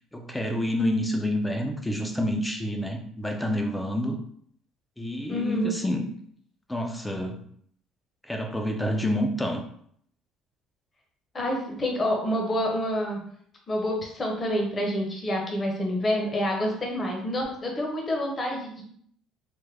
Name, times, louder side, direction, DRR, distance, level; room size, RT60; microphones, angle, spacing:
voice 1, 0.1-4.2 5.0-6.0 6.7-7.4 8.2-9.6, left 1 dB, 10° left, 3 dB, 0.4 m, -28 dB
voice 2, 5.3-5.8 11.3-13.2 13.7-18.8, equal, 25° left, 0 dB, 0.8 m, -28 dB
3.5 x 2.1 x 3.3 m, 0.63 s
cardioid pair, 130°, 0 cm